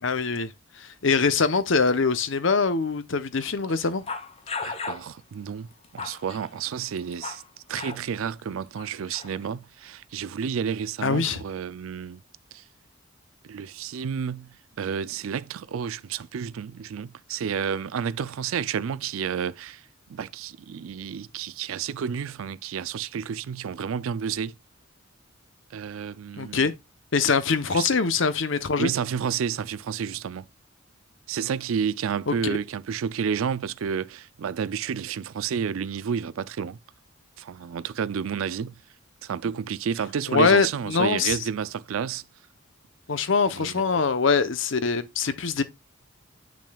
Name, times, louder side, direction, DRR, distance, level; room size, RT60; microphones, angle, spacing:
voice 1, 0.0-4.0 11.0-11.4 26.4-26.7 27.1-28.9 32.3-32.4 40.3-41.4 43.1-45.6, left 5 dB, 65° left, 0.8 m, -23 dB
sound 1, 4.1-5.1 5.7-7.5 7.7-8.0 8.8-9.5, left 4 dB, 30° left, 0.8 m, -36 dB
voice 2, 4.6-5.7 5.9-7.4 7.7-12.2 12.5-12.6 13.4-19.8 20.1-24.5 25.7-26.7 27.7-27.9 28.8-30.5 31.3-36.8 37.4-38.8 39.2-42.2 43.5-44.1, right 7 dB, 80° right, 0.4 m, -30 dB
8.4 x 6.1 x 2.3 m
head